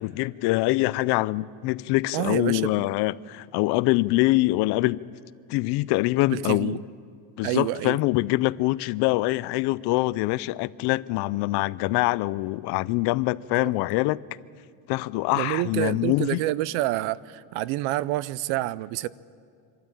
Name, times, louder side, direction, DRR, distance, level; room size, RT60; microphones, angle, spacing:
voice 1, 0.0-5.0 5.5-6.8 7.4-14.2 14.9-16.4, left 20 dB, 60° left, 0.5 m, -24 dB
voice 2, 2.1-2.7 6.3-6.8 7.4-8.0 13.6-13.7 15.3-19.1, right 16 dB, 75° right, 0.7 m, -28 dB
26.0 x 12.5 x 8.8 m
cardioid pair, 155°, 47 cm